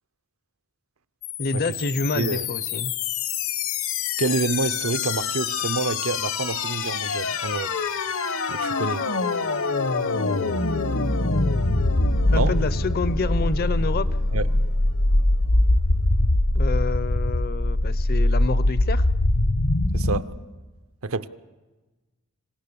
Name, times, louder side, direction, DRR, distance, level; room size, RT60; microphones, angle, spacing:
sound 1, 1.2-20.2, left 2 dB, 65° left, 1.0 m, -23 dB
voice 1, 1.4-2.9 12.3-14.1 16.5-19.1, left 3 dB, 45° left, 0.7 m, -28 dB
voice 2, 2.1-2.5 4.2-7.7 8.5-9.1 12.3-12.6 14.3-14.5 19.9-20.3 21.0-21.3, right 3 dB, 70° right, 0.8 m, -27 dB
26.5 x 17.5 x 6.9 m
head